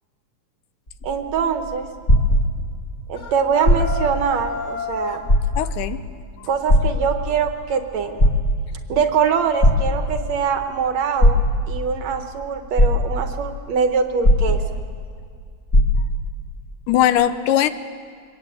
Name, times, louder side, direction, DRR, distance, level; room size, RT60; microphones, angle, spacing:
sound 1, 0.9-2.9 3.5-4.2 4.6-4.7 5.2-5.9 6.7-7.5 8.0-8.9 9.6-10.4 11.2-11.9 12.4-12.5 12.8-13.5 14.2-15.0 15.3-15.4 15.7-16.3 17.1-17.2, equal, 30° left, 2.5 m, -18 dB
voice 1, 1.0-1.9 3.1-5.2 6.5-8.3 8.9-11.4 11.7-14.6, right 6 dB, 65° right, 6 dB, 2.1 m, -23 dB
sound 2, 3.1-5.3, left 4 dB, 50° left, 1.7 m, -31 dB
voice 2, 5.6-6.0 6.4-6.5 16.9-17.7, left 11 dB, 80° left, 12 dB, 2.3 m, -19 dB
23.5 x 20.0 x 8.6 m, 2.1 s
omnidirectional pair, 3.7 m